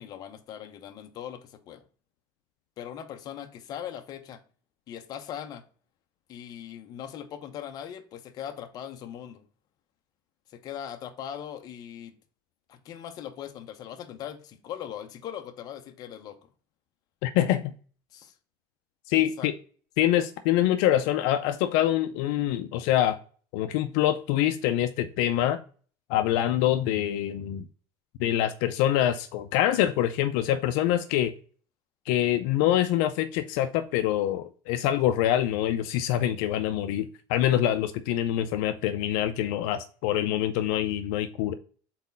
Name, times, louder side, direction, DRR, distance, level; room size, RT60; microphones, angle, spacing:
voice 1, 0.0-1.8 2.8-4.4 4.9-5.6 6.3-9.5 10.5-12.2 12.7-16.5 18.1-18.3 19.4-19.5, left 9 dB, 45° left, 0.8 m, -40 dB
voice 2, 17.2-17.7 19.1-19.5 20.0-23.2 23.5-25.6 26.1-27.6 28.2-31.3 32.1-41.5, left 12 dB, 80° left, 0.5 m, -25 dB
4.3 x 4.1 x 5.4 m
cardioid pair, 150°, 10 cm